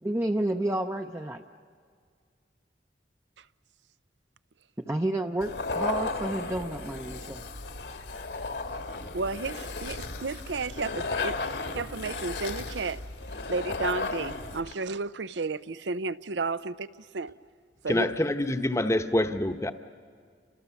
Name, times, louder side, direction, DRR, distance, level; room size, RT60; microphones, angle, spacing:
voice 1, 0.0-1.4 4.9-7.4, right 1 dB, 15° right, 0.6 m, -30 dB
sound 1, 5.4-14.7, left 3 dB, 70° left, 1.8 m, -34 dB
voice 2, 9.1-11.4 11.8-13.0 13.5-17.3 17.8-18.1, right 4 dB, 80° right, 0.6 m, -32 dB
voice 3, 17.9-19.7, left 1 dB, 15° left, 0.9 m, -26 dB
29.5 x 25.5 x 7.0 m
head